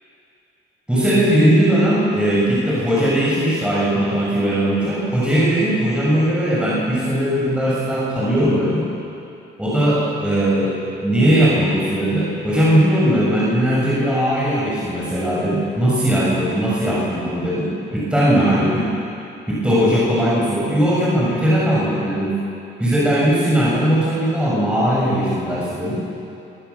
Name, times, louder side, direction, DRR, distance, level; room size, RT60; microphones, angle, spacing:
voice 1, 0.9-8.8 9.6-10.7 11.0-18.9 19.5-22.4 22.8-25.9, right 1 dB, 5° right, -7 dB, 7.2 m, -19 dB
26.0 x 20.0 x 7.3 m, 2.7 s
cardioid pair, 90°, 20 cm